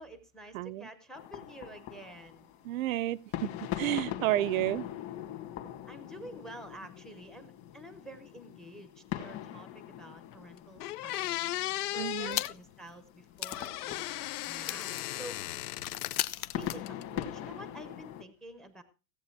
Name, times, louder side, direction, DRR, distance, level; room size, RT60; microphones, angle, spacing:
voice 1, 0.0-2.5 5.9-11.6 11.9-14.1 14.4-15.4 16.4-18.8, right 1 dB, ahead, 0.6 m, -49 dB
voice 2, 0.5-0.9 2.6-4.9 12.0-12.4, right 15 dB, 65° right, 0.6 m, -31 dB
sound 1, 1.1-18.2, left 11 dB, 30° left, 1.8 m, -42 dB
sound 2, 10.3-10.4 10.8-12.5 13.4-16.2 16.5-17.2, left 16 dB, 90° left, 0.8 m, -36 dB
sound 3, 12.3-12.8 13.1-13.2 13.4-17.5, left 15 dB, 65° left, 1.1 m, -39 dB
16.5 x 8.4 x 4.5 m
supercardioid pair, 175°, 44 cm